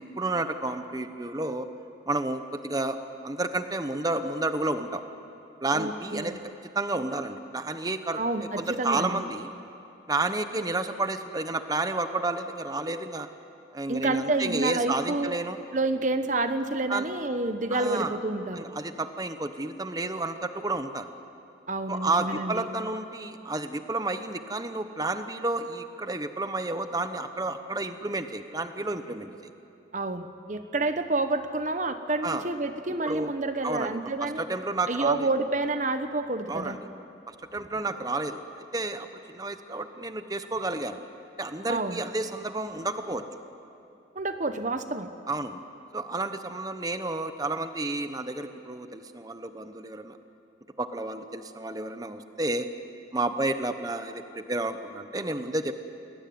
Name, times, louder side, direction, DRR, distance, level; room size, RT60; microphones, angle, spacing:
voice 1, 0.0-1.7 2.1-3.0 3.2-5.0 5.6-6.4 6.7-8.2 8.6-9.5 10.1-13.3 13.7-15.6 16.9-17.1 17.7-18.2 18.5-21.1 21.9-29.3 32.2-32.5 33.0-33.3 33.6-34.0 34.4-35.3 36.5-36.8 37.5-38.4 38.7-41.0 41.4-43.3 45.3-45.6 45.9-50.2 50.8-52.7 53.1-55.7, right 2 dB, 20° right, 9 dB, 1.0 m, -31 dB
voice 2, 5.7-6.4 8.2-9.2 13.9-15.3 15.7-18.6 21.7-22.7 29.9-34.4 34.9-36.8 41.7-42.0 44.1-45.1, right 2 dB, 45° right, 9 dB, 1.1 m, -29 dB
29.5 x 20.0 x 9.5 m, 2.8 s
head